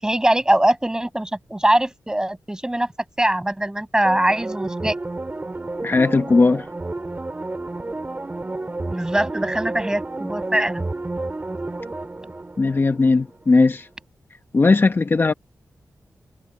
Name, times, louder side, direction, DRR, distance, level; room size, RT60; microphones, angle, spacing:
voice 1, 0.0-2.9 3.2-5.0 8.9-10.8, right 1 dB, 10° right, 6.7 m, -22 dB
sound 1, 4.0-13.4 13.8-13.9, right 2 dB, 30° right, 5.5 m, -31 dB
voice 2, 5.8-6.7 12.6-13.9 14.5-15.3, left 3 dB, 40° left, 0.9 m, -17 dB
cardioid pair, 80°, 6 cm